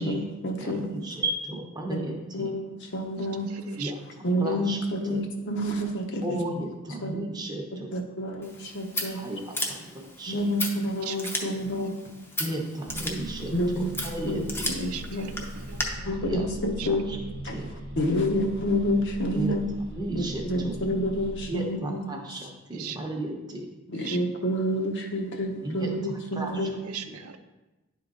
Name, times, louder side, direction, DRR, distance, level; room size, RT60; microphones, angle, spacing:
voice 1, 0.0-0.9 1.9-2.0 2.3-3.5 4.2-6.4 7.0-7.1 7.9-9.2 10.3-11.9 13.5-13.9 14.2-15.3 16.0-17.1 17.4-17.5 18.0-19.6 20.1-20.2 20.5-22.2 23.9-26.7, equal, 55° left, 2 dB, 0.9 m, -28 dB
voice 2, 0.6-2.5 3.7-4.8 5.1-5.2 6.2-7.9 9.1-10.4 12.4-14.6 16.0-16.4 16.8-17.2 17.5-17.7 19.3-19.5 19.9-20.7 21.5-23.7 25.6-25.9 26.3-26.7 27.0-27.2, right 1 dB, 20° right, 1 dB, 0.8 m, -34 dB
voice 3, 3.5-3.9 11.0-11.5 14.7-15.9 16.8-16.9 22.7-23.0 24.0-24.2 26.8-27.4, right 8 dB, 75° right, 8 dB, 0.5 m, -39 dB
Scissors, 8.4-15.8, left 1 dB, 10° left, 0.7 m, -36 dB
sound 1, 12.8-21.5, right 1 dB, 50° right, 1.0 m, -40 dB
10.0 x 3.8 x 3.8 m, 1.1 s
head